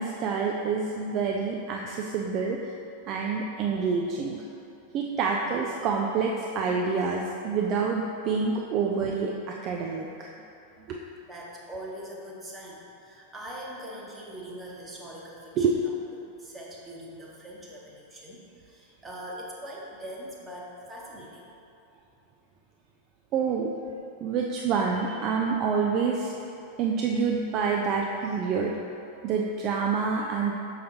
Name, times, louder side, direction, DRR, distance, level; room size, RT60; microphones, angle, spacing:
voice 1, 0.0-2.8 3.1-4.4 4.9-10.3 10.9-11.0 15.6-15.8 23.3-23.7 24.2-26.3 26.8-28.8 29.2-30.5, right 5 dB, 35° right, 0 dB, 0.4 m, -27 dB
voice 2, 11.3-15.9 16.4-21.5, equal, 15° right, -3 dB, 1.0 m, -42 dB
6.3 x 5.7 x 2.8 m, 2.7 s
figure-of-eight pair, 90°, 0 cm